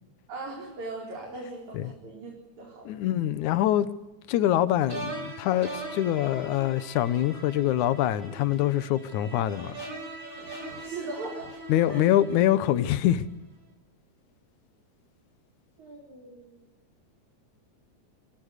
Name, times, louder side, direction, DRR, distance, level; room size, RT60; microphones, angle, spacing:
voice 1, 0.3-2.3 2.6-2.9 10.8-11.5 11.9-12.0 15.8-16.6, right 2 dB, 70° right, 5.8 m, -39 dB
voice 2, 2.9-3.9 4.3-9.8 11.7-13.3, left 12 dB, 80° left, 2.4 m, -24 dB
sound 1, 4.9-13.1, right 2 dB, 40° right, 6.2 m, -41 dB
28.5 x 20.0 x 6.6 m
omnidirectional pair, 3.4 m